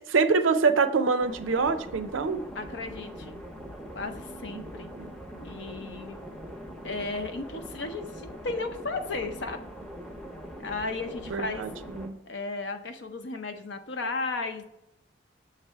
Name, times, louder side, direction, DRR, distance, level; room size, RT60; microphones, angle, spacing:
voice 1, 0.1-2.4 4.5-4.6 5.0-5.1 11.3-11.7 12.0-12.2, right 4 dB, 80° right, 10 dB, 0.5 m, -25 dB
sound 1, 1.2-12.1, equal, ahead, 0.6 m, -42 dB
voice 2, 2.5-3.4 3.9-4.9 5.4-6.2 6.8-9.6 10.6-11.6 12.3-14.6, left 3 dB, 60° left, 7 dB, 0.6 m, -34 dB
7.0 x 3.3 x 4.5 m, 0.85 s
head